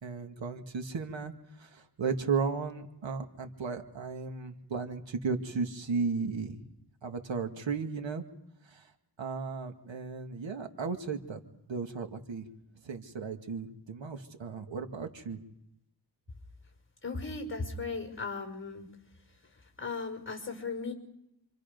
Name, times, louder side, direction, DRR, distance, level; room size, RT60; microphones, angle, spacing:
voice 1, 0.0-6.6 7.0-8.2 8.6-8.9 9.2-11.4 11.7-12.5 12.8-15.4, right 5 dB, 80° right, 5 dB, 2.2 m, -35 dB
voice 2, 17.0-18.9 19.8-20.9, left 4 dB, 25° left, 4 dB, 5.5 m, -36 dB
28.5 x 26.5 x 5.3 m, 0.82 s
wide cardioid pair, 105°, 45 cm